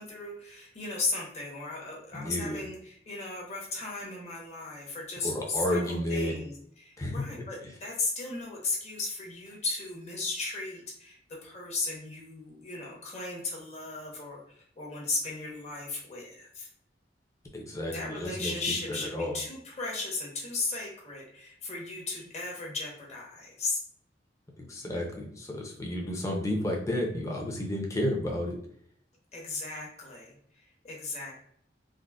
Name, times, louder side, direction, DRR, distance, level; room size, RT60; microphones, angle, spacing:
voice 1, 0.0-16.7 17.9-23.8 29.3-31.3, left 3 dB, 35° left, -3 dB, 0.9 m, -36 dB
voice 2, 2.1-2.6 5.2-6.3 7.0-7.2 17.5-18.5 18.9-19.4 24.7-28.6, left 1 dB, 15° left, -1 dB, 0.5 m, -31 dB
3.7 x 2.1 x 2.3 m, 0.65 s
head